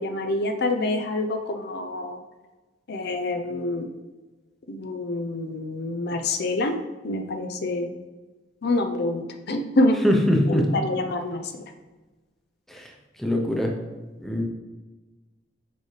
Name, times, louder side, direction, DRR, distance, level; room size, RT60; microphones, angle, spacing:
voice 1, 0.0-2.2 2.9-3.9 4.7-6.7 7.0-7.9 8.6-10.0 10.5-11.4, left 2 dB, 60° left, 6 dB, 0.5 m, -26 dB
voice 2, 10.0-10.7 12.7-12.9 13.2-13.7 14.2-14.4, equal, ahead, 1 dB, 0.7 m, -22 dB
6.8 x 4.8 x 3.3 m, 1.2 s
head